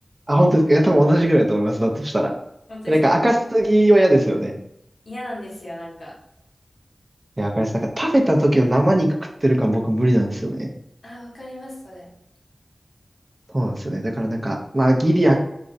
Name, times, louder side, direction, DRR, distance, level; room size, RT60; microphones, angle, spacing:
voice 1, 0.3-2.3 2.9-4.6 7.4-7.7 8.0-9.1 9.4-10.7 13.5-15.4, right 1 dB, 30° right, 2 dB, 0.4 m, -18 dB
voice 2, 2.7-3.0 5.0-6.1 11.0-12.1, left 1 dB, 70° left, -5 dB, 0.9 m, -36 dB
2.4 x 2.0 x 2.5 m, 0.81 s
wide cardioid pair, 60°, 0 cm